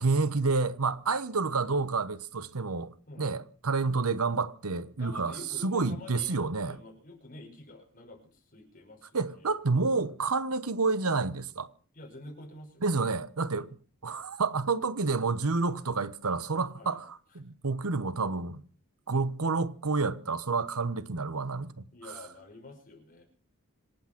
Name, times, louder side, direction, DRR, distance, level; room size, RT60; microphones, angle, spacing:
voice 1, 0.0-6.8 9.1-11.7 12.8-13.7 14.0-18.6 19.1-21.8, right 4 dB, 90° right, 1.1 m, -29 dB
voice 2, 5.0-9.5 11.9-12.8 13.6-13.7 16.7-17.0 21.9-23.2, left 2 dB, 40° left, 5.8 m, -48 dB
26.5 x 8.9 x 6.0 m
head